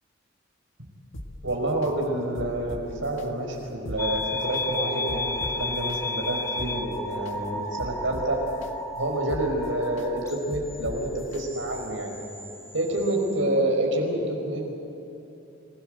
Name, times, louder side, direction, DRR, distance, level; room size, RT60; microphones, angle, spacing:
sound 1, 1.1-1.9 2.3-3.3 3.7-4.6 5.1-6.0 6.4-7.3 7.8-8.7 9.1-10.1 10.5-11.4 11.9-12.0, left 1 dB, 75° left, 1.9 m, -40 dB
voice 1, 1.4-8.4 8.9-12.1 12.7-14.8, right 1 dB, 75° right, 1 dB, 5.3 m, -28 dB
sound 2, 4.0-13.4, left 2 dB, 15° left, 2.4 m, -34 dB
27.0 x 18.0 x 8.0 m, 2.9 s
head